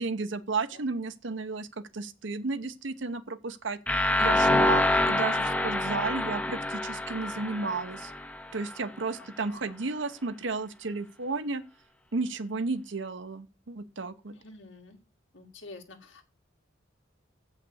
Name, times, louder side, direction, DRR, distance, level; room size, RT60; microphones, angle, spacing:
voice 1, 0.0-8.1 8.5-11.6 12.1-14.3, right 3 dB, 70° right, 0.9 m, -33 dB
sound 1, 3.9-8.7, left 1 dB, 5° left, 0.6 m, -26 dB
voice 2, 9.2-9.8 14.3-15.0 15.3-16.2, left 2 dB, 75° left, 2.1 m, -49 dB
8.1 x 5.8 x 7.9 m
head